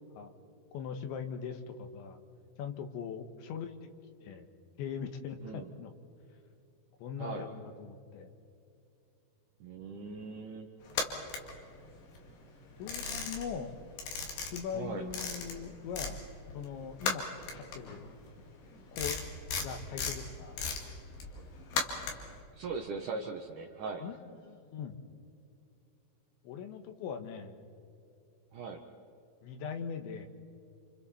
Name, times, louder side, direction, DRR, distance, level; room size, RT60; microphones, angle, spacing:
voice 1, 0.7-2.2 2.6-3.9 4.2-4.5 4.8-5.9 7.0-8.3 12.8-13.7 14.4-16.2 16.5-17.3 17.5-18.1 18.9-19.2 19.6-20.6 24.0-25.0 26.4-27.6 29.4-30.3, left 7 dB, 90° left, 7 dB, 3.7 m, -41 dB
voice 2, 7.2-7.5 9.6-10.7 14.7-15.1 22.5-24.0 28.5-28.8, right 4 dB, 70° right, 2 dB, 1.9 m, -39 dB
sound 1, 10.9-12.2 12.5-13.7 13.9-16.2 16.5-22.4, left 5 dB, 70° left, 4.3 m, -36 dB
29.5 x 28.0 x 4.3 m, 2.6 s
omnidirectional pair, 5.1 m